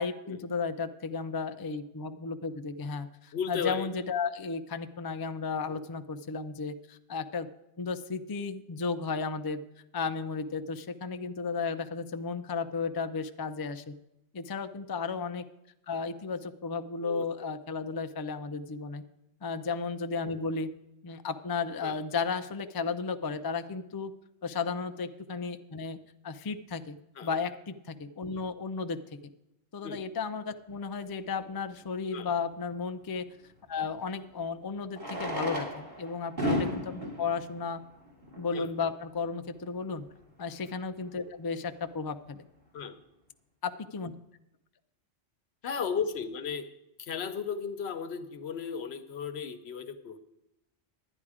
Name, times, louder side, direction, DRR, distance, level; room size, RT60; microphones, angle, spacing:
voice 1, 0.0-7.5 7.8-9.6 9.9-13.9 14.3-15.4 15.9-19.0 19.4-20.7 21.0-24.1 24.4-26.0 26.2-29.0 29.7-33.2 33.7-37.8 38.4-40.0 40.4-42.4 43.6-44.1, left 5 dB, 35° left, 9 dB, 0.3 m, -34 dB
voice 2, 3.3-3.9 5.7-5.8 17.0-17.2 21.8-22.0 27.2-27.3 29.8-30.1 32.1-32.3 35.2-35.4 38.5-38.7 42.7-43.0 45.6-46.7 47.0-50.2, left 6 dB, 75° left, 10 dB, 1.1 m, -35 dB
Fireworks, 31.4-31.5 33.7-33.8 34.9-38.6 39.4-39.5 39.7-39.8 40.0-40.1 40.6-40.8, equal, 45° right, 2.8 m, -34 dB
10.5 x 10.0 x 4.9 m, 0.89 s
omnidirectional pair, 1.1 m